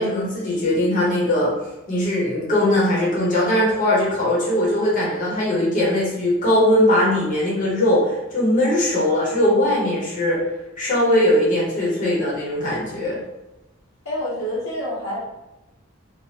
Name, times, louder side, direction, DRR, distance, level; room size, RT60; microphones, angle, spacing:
voice 1, 0.0-1.5 1.9-10.4 10.8-13.2, left 1 dB, 40° left, -6 dB, 0.8 m, -20 dB
voice 2, 14.0-15.2, equal, 70° left, -5 dB, 0.8 m, -28 dB
3.3 x 2.1 x 2.7 m, 0.97 s
head